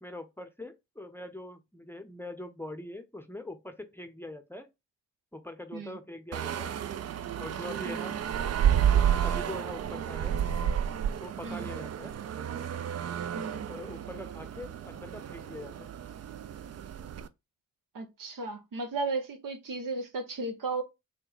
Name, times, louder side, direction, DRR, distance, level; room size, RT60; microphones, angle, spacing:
voice 1, 0.0-4.7 5.3-6.7 7.4-8.2 9.2-10.4 11.2-12.2 13.7-15.9, left 1 dB, 5° left, 0.7 m, -43 dB
sound 1, 6.3-17.3, right 9 dB, 45° right, 0.4 m, -31 dB
voice 2, 7.9-8.2 11.4-11.7 13.3-13.7 17.9-20.8, right 3 dB, 65° right, 0.9 m, -35 dB
3.9 x 2.2 x 3.9 m
supercardioid pair, 40°, 35 cm